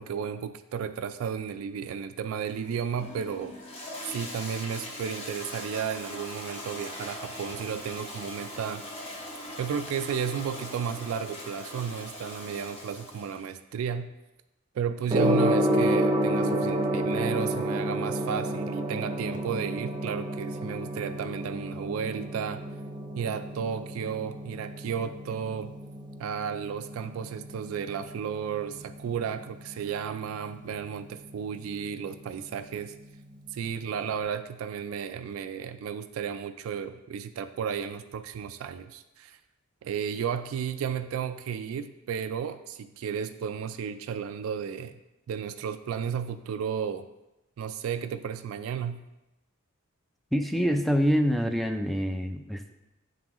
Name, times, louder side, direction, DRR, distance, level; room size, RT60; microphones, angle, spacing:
voice 1, 0.0-3.5 4.0-8.8 9.6-14.1 14.7-22.6 23.2-25.7 26.2-32.9 33.5-39.4 39.8-45.0 45.3-47.1 47.6-49.0, right 7 dB, 85° right, 9 dB, 0.3 m, -33 dB
Toilet flush, 2.5-13.5, left 1 dB, 30° left, 0.8 m, -41 dB
Gong, 15.1-34.1, right 1 dB, 25° right, 0.6 m, -31 dB
voice 2, 50.3-52.7, equal, ahead, 6 dB, 0.3 m, -26 dB
9.1 x 3.7 x 3.0 m, 0.97 s
head